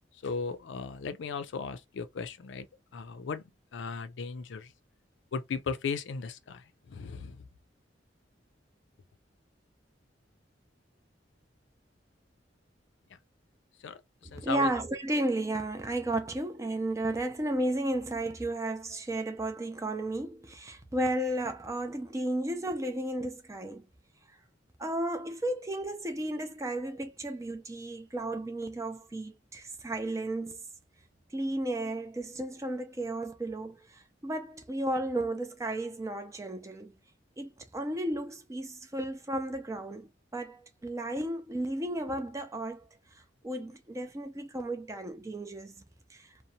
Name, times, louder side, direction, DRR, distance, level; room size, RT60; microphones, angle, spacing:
voice 1, 0.2-2.7 2.9-4.7 5.3-7.4 13.8-14.0 14.3-14.7, left 5 dB, 75° left, 0.4 m, -36 dB
voice 2, 14.2-23.9 24.8-30.6 31.3-36.9 37.4-42.8 43.4-45.7 46.1-46.3, right 1 dB, 15° right, 0.4 m, -33 dB
2.7 x 2.0 x 2.6 m
head